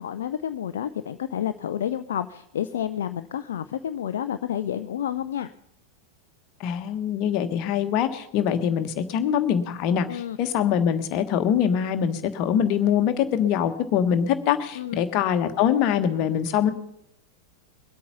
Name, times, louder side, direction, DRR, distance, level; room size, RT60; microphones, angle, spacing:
voice 1, 0.0-5.5 10.1-10.4 14.7-15.0, left 10 dB, 60° left, 10 dB, 0.5 m, -30 dB
voice 2, 6.6-16.7, left 9 dB, 40° left, 8 dB, 1.3 m, -23 dB
21.5 x 8.5 x 5.7 m, 0.75 s
figure-of-eight pair, 90°, 0 cm